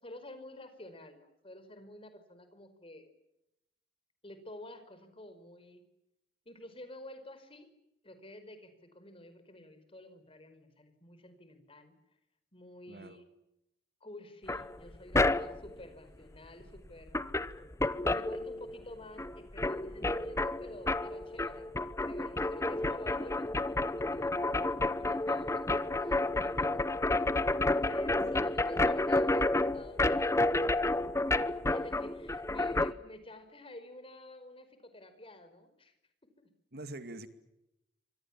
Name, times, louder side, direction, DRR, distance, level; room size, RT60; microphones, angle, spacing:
voice 1, 0.0-3.1 4.2-5.8 6.4-7.7 8.0-12.0 12.5-13.2 14.0-17.2 18.1-27.0 27.8-30.6 31.6-35.9 36.4-36.5, left 1 dB, 30° left, 10 dB, 5.0 m, -50 dB
voice 2, 12.9-13.2 28.1-28.5 36.7-37.3, right 2 dB, 60° right, 10 dB, 2.3 m, -45 dB
sound 1, 14.5-15.7 16.8-16.9 17.1-18.9 19.2-32.9, left 2 dB, 15° left, 0.9 m, -30 dB
28.5 x 26.0 x 7.4 m, 0.87 s
head